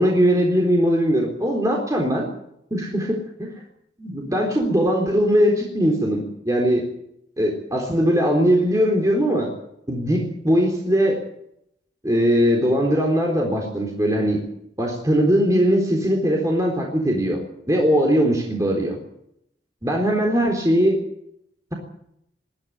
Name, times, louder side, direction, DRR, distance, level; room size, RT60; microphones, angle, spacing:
voice 1, 0.0-2.3 2.7-3.5 4.0-6.9 7.4-9.5 9.9-11.2 12.0-14.4 14.8-17.4 17.7-19.0 19.8-21.0, equal, 20° right, 0 dB, 3.9 m, -20 dB
21.0 x 14.5 x 9.4 m, 0.76 s
head